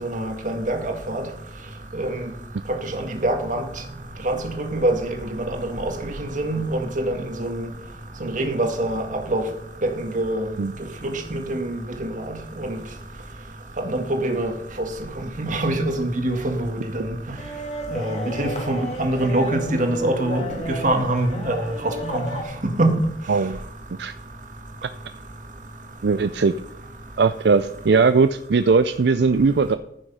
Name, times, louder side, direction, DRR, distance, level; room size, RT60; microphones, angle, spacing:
voice 1, 0.0-1.2 2.0-2.1 2.9-3.6 4.2-5.0 5.5-7.1 7.4-7.6 8.2-9.0 9.3-9.4 10.0-10.5 11.0-12.8 13.9-14.5 15.4-17.0 17.9-22.2 22.6-22.9, right 1 dB, 45° right, 5 dB, 1.8 m, -24 dB
sound 1, 17.4-22.4, equal, 40° left, 2.5 m, -33 dB
voice 2, 26.0-26.5 27.2-29.8, right 4 dB, 65° right, 11 dB, 0.5 m, -19 dB
14.5 x 6.4 x 5.6 m, 0.81 s
head